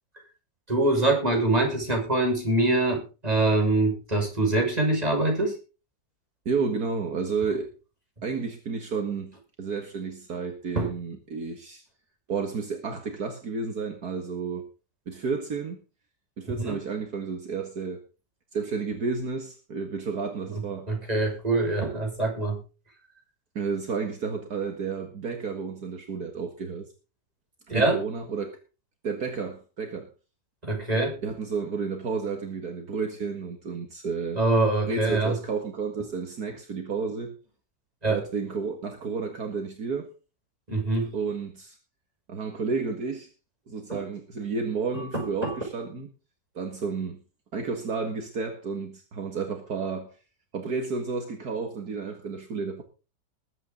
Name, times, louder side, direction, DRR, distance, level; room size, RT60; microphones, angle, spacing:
voice 1, 0.7-5.6 10.7-10.9 16.5-16.8 20.5-22.6 27.7-28.0 30.6-31.2 34.3-35.4 38.0-38.2 40.7-41.1 43.9-44.0 44.9-45.6, right 2 dB, 20° right, 6.2 m, -24 dB
voice 2, 6.5-7.7 8.2-11.8 12.3-14.7 15.1-15.8 16.4-18.0 18.5-20.9 23.6-26.9 27.7-28.6 29.0-30.1 31.2-34.4 34.9-37.4 38.1-40.1 41.1-41.8 42.3-43.3 43.7-46.1 46.6-47.2 47.5-50.2 50.5-52.8, right 5 dB, 60° right, 2.3 m, -31 dB
21.0 x 8.8 x 3.9 m
omnidirectional pair, 1.8 m